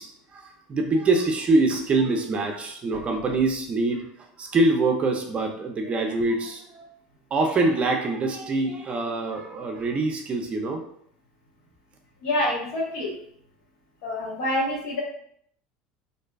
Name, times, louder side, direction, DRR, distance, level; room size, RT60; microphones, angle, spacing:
voice 1, 0.0-4.1 4.4-6.9 7.3-10.8, right 2 dB, 30° right, 3 dB, 0.4 m, -24 dB
voice 2, 12.2-13.1 14.0-15.0, left 1 dB, 75° left, -3 dB, 0.9 m, -26 dB
2.6 x 2.2 x 2.2 m, 0.66 s
supercardioid pair, 95°, 4 cm